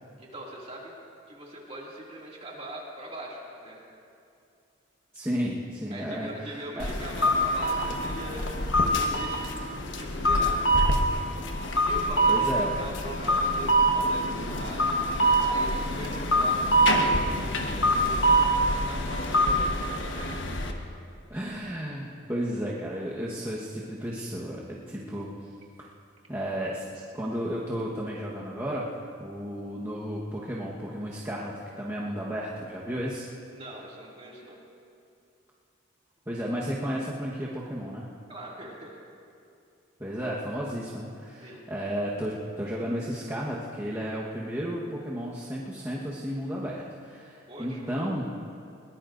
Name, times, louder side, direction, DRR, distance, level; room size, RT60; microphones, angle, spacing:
voice 1, 0.2-0.9 1.3-3.8 5.9-8.5 8.9-10.6 11.9-15.0 15.5-18.4 18.7-20.3 33.5-34.6 38.3-39.0 41.4-41.6 47.5-48.0, right 1 dB, 30° right, -3 dB, 2.4 m, -41 dB
voice 2, 5.1-6.9 12.3-12.7 15.3-15.4 21.3-25.3 25.8-25.9 26.3-26.9 27.1-28.9 29.2-33.2 36.3-38.1 40.0-48.5, equal, 15° right, -7 dB, 1.2 m, -33 dB
sound 1, 6.8-20.7, right 1 dB, 65° left, 1.2 m, -25 dB
22.0 x 19.5 x 2.6 m, 2.5 s
head